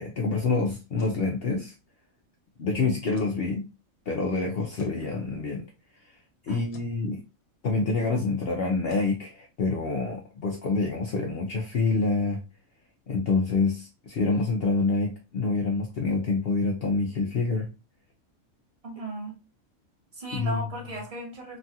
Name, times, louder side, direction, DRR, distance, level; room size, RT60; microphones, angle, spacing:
voice 1, 0.0-1.7 2.6-3.7 4.1-5.6 6.4-7.2 7.6-12.4 13.1-17.7 20.3-20.6, left 3 dB, 60° left, 0 dB, 0.6 m, -27 dB
sound 1, 1.0-1.2 3.1-3.4 4.8-5.0 6.7-7.0 8.9-9.1, left 6 dB, 80° left, 1.1 m, -45 dB
voice 2, 18.8-19.4 20.1-21.6, right 2 dB, 30° right, -1 dB, 0.9 m, -36 dB
3.0 x 2.3 x 2.6 m, 0.30 s
omnidirectional pair, 1.4 m